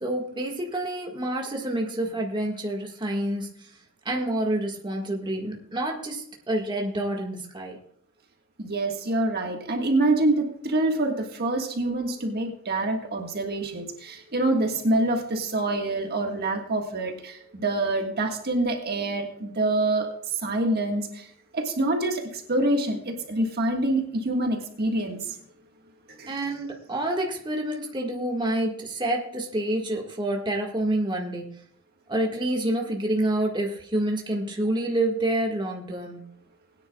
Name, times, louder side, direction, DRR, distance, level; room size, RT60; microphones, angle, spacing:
voice 1, 0.0-3.7 4.1-7.8 26.3-31.5 32.1-36.2, right 1 dB, 20° right, 0 dB, 1.7 m, -28 dB
voice 2, 8.6-20.1 20.4-21.3 21.5-25.2 26.2-26.3, right 2 dB, 50° right, 3 dB, 1.6 m, -26 dB
20.5 x 9.8 x 2.3 m, 0.66 s
head